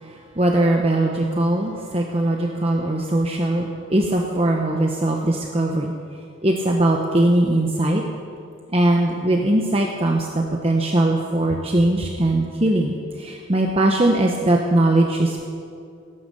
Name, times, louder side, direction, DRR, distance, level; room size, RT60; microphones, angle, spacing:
voice 1, 0.0-5.9 6.4-8.0 8.7-15.5, right 1 dB, 30° right, 1 dB, 0.9 m, -20 dB
17.5 x 9.8 x 6.8 m, 2.4 s
head